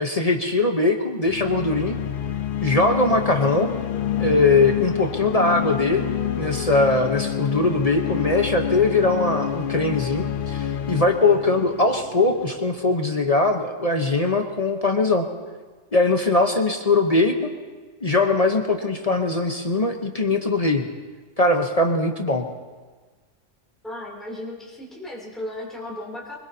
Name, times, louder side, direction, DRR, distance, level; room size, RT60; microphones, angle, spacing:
voice 1, 0.0-2.0 2.6-3.7 4.2-6.1 6.3-15.3 15.9-17.3 18.0-20.9 21.4-22.5, left 2 dB, 30° left, 3 dB, 1.0 m, -21 dB
sound 1, 1.2-12.8, left 10 dB, 55° left, 0.6 m, -28 dB
voice 2, 23.8-26.4, left 1 dB, ahead, -4 dB, 3.0 m, -35 dB
24.0 x 21.5 x 2.8 m, 1.4 s
omnidirectional pair, 1.3 m